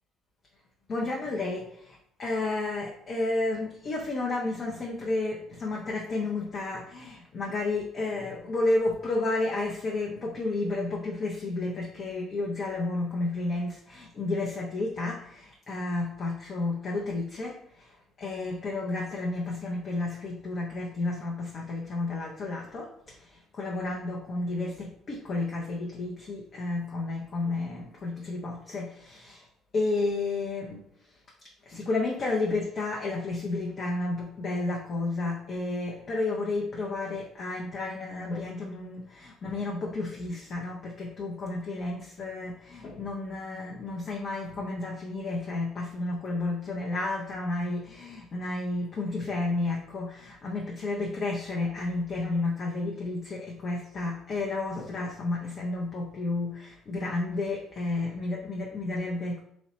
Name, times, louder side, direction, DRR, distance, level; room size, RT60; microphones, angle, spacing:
voice 1, 0.9-29.5 29.7-31.2 31.7-59.4, left 2 dB, 50° left, -2 dB, 0.6 m, -31 dB
3.1 x 2.9 x 2.8 m, 0.69 s
hypercardioid pair, 60°, 0 cm